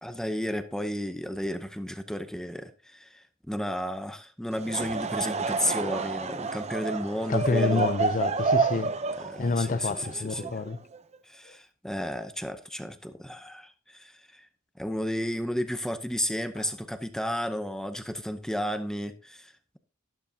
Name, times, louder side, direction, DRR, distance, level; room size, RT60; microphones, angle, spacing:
voice 1, 0.0-7.9 9.2-10.5 11.2-14.5 14.8-19.8, equal, 5° left, 0.7 m, -33 dB
Laughter / Crowd, 4.5-11.0, right 4 dB, 35° right, 0.7 m, -29 dB
voice 2, 7.3-8.9 9.4-10.8 11.5-11.6, left 3 dB, 40° left, 0.6 m, -28 dB
12.0 x 11.5 x 2.8 m
head